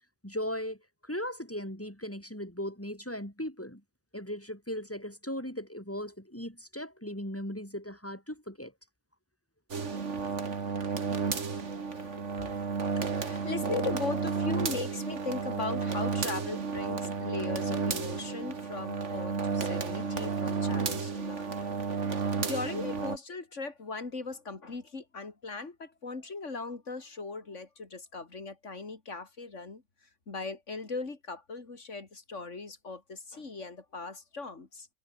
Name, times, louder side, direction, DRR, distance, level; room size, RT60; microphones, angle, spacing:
voice 1, 0.2-3.8 4.1-8.7, equal, 10° left, 6.6 m, -38 dB
sound 1, 9.7-23.2, right 5 dB, 80° right, 2.2 m, -32 dB
voice 2, 11.7-12.3 13.0-21.7 22.1-29.8 30.3-34.9, left 3 dB, 90° left, 3.2 m, -39 dB
omnidirectional pair, 1.2 m